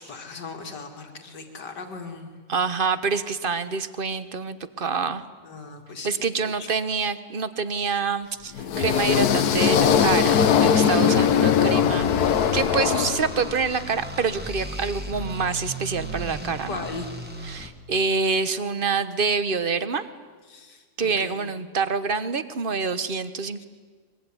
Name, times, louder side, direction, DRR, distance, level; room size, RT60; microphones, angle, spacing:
voice 1, 0.0-2.4 5.4-6.1 6.4-6.7 16.6-17.1 20.5-21.5 23.6-23.7, left 4 dB, 90° left, 4 dB, 3.1 m, -38 dB
voice 2, 2.5-5.2 6.0-16.9 17.4-20.1 21.0-23.6, right 5 dB, 35° right, 13 dB, 1.2 m, -26 dB
sound 1, 8.6-13.7, left 8 dB, 70° left, 1.5 m, -20 dB
sound 2, 11.6-17.7, right 1 dB, 5° right, 2.1 m, -36 dB
23.0 x 23.0 x 9.9 m, 1.5 s
omnidirectional pair, 1.8 m